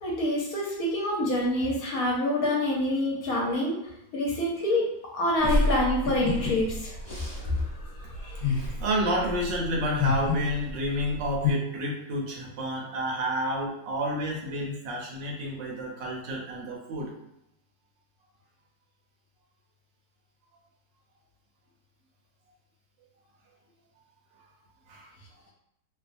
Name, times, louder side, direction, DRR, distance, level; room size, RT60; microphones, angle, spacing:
voice 1, 0.0-3.8 4.1-6.9 7.3-7.7 8.0-8.4, left 1 dB, 65° left, -3 dB, 1.0 m, -27 dB
sound 1, 5.4-11.5, left 3 dB, 30° left, 1.0 m, -29 dB
voice 2, 8.8-17.1 24.9-25.1, equal, 90° right, -2 dB, 1.4 m, -30 dB
3.2 x 2.1 x 2.5 m, 0.84 s
omnidirectional pair, 1.9 m